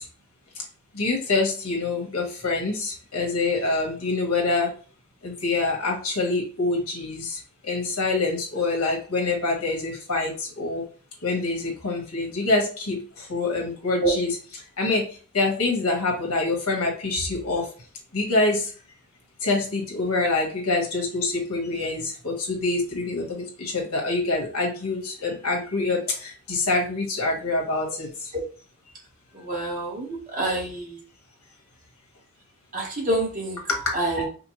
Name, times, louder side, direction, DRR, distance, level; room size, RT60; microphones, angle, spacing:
voice 1, 0.9-4.7 5.2-7.4 7.7-10.8 11.2-13.0 13.3-14.4 14.8-15.0 15.3-17.6 18.1-18.7 19.4-28.1 33.7-33.9, left 3 dB, 80° left, 0 dB, 1.5 m, -25 dB
voice 2, 29.3-31.0 32.7-33.6 33.9-34.3, right 2 dB, 35° right, -2 dB, 1.4 m, -27 dB
5.1 x 2.3 x 3.1 m, 0.39 s
head